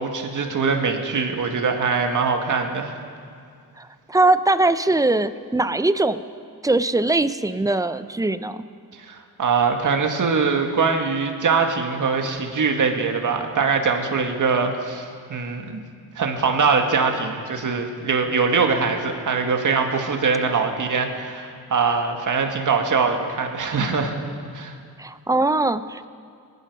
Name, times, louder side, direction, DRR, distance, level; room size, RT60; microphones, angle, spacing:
voice 1, 0.0-2.9 8.9-15.8 16.2-24.1 24.5-24.7, right 5 dB, 50° right, 4 dB, 1.8 m, -22 dB
voice 2, 3.8-6.2 6.6-8.6 25.0-26.1, right 2 dB, 10° right, 13 dB, 0.5 m, -21 dB
20.0 x 11.5 x 5.4 m, 2.2 s
cardioid pair, 90°, 39 cm